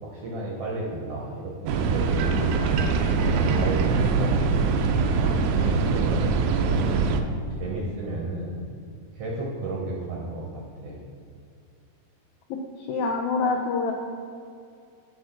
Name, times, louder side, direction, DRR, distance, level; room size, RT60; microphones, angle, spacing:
voice 1, 0.0-4.4 5.1-6.3 6.6-8.6 9.1-11.0, right 2 dB, 65° right, -2 dB, 1.6 m, -33 dB
sound 1, 1.7-7.2, right 4 dB, 80° right, 1.8 m, -23 dB
voice 2, 12.8-13.9, left 4 dB, 90° left, 1 dB, 1.6 m, -25 dB
7.9 x 5.1 x 5.8 m, 2.4 s
omnidirectional pair, 4.0 m